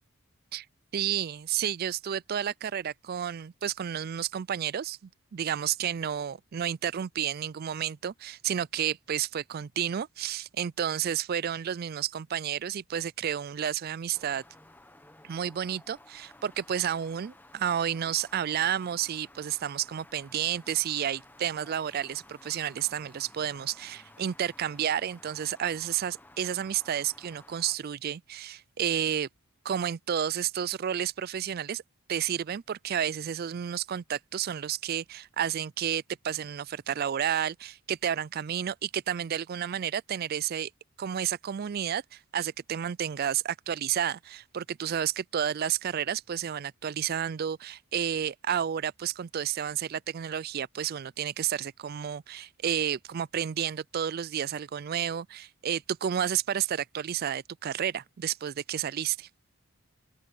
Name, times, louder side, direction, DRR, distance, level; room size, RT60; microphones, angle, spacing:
voice 1, 0.9-14.4 15.2-29.3 29.6-31.8 32.1-40.7 41.0-59.3, right 9 dB, 45° right, 0.3 m, -31 dB
sound 1, 14.1-27.8, left 1 dB, 10° left, 1.0 m, -55 dB
open air
head